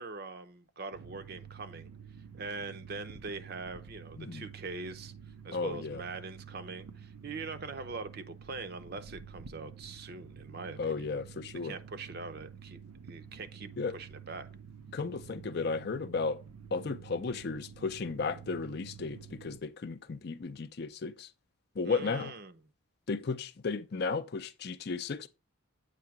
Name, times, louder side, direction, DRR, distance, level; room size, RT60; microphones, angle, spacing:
voice 1, 0.0-1.9 2.3-5.1 5.4-11.1 11.6-12.8 13.1-13.7 13.9-14.5 21.9-22.6, right 3 dB, 50° right, 0.6 m, -42 dB
sound 1, 0.9-19.6, right 7 dB, 90° right, 0.7 m, -49 dB
voice 2, 5.5-6.0 10.8-11.7 13.8-14.0 14.9-16.4 16.7-21.3 21.8-22.3 23.1-25.3, left 4 dB, 50° left, 0.4 m, -34 dB
8.3 x 2.8 x 5.8 m
head